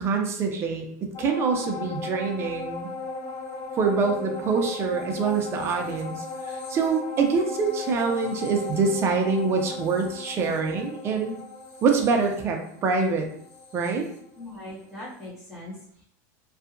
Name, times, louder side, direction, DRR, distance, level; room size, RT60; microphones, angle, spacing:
voice 1, 0.0-2.9 3.8-11.4 11.8-13.3 13.7-14.1, right 4 dB, 25° right, 3 dB, 0.5 m, -25 dB
sound 1, 1.1-14.8 15.2-15.3, left 3 dB, 40° left, 0.7 m, -37 dB
voice 2, 14.3-16.0, left 1 dB, ahead, -12 dB, 1.1 m, -40 dB
2.7 x 2.3 x 2.5 m, 0.64 s
supercardioid pair, 145°, 9 cm